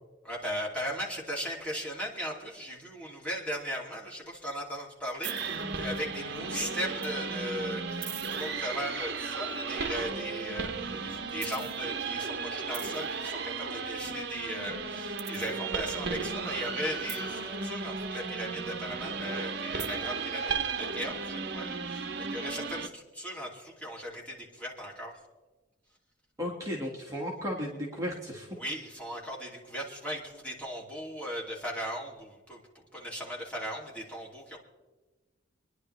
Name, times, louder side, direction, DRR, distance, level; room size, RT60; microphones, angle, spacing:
voice 1, 0.2-10.7 11.0-25.1 28.6-32.6 32.9-34.6, equal, 5° left, -3 dB, 2.7 m, -37 dB
sound 1, 5.2-22.9, right 4 dB, 55° right, 0.9 m, -35 dB
voice 2, 26.4-28.5, equal, 15° right, -3 dB, 1.9 m, -34 dB
27.5 x 11.0 x 3.3 m, 1.2 s
head